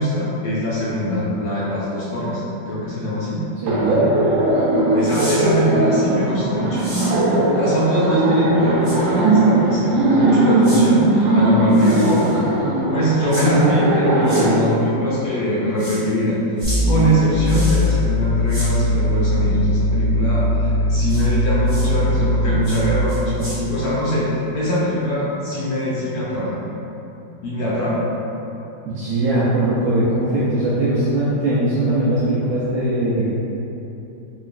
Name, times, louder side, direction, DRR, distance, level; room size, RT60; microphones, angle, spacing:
voice 1, 0.0-3.4 4.9-6.8 7.1-12.4 12.9-16.4 16.8-26.6 27.4-28.1, equal, 70° left, -6 dB, 1.0 m, -22 dB
voice 2, 3.6-4.1 28.9-33.3, right 1 dB, 75° right, -9 dB, 0.8 m, -20 dB
Laughter, 3.7-14.6, right 2 dB, 90° right, 1.3 m, -18 dB
sound 1, 5.0-5.4 6.7-7.1 8.8-9.0 10.6-10.8 11.7-12.3 13.3-13.5 14.2-14.4 15.8-16.0 16.6-16.8 17.4-17.9 18.5-18.7 21.1-21.2 21.7-21.9 22.6-22.8 23.1-23.6, equal, 20° right, 0.5 m, -32 dB
sound 2, 16.6-22.8, left 1 dB, 40° right, 0.9 m, -19 dB
3.9 x 2.9 x 2.4 m, 3.0 s
omnidirectional pair, 2.0 m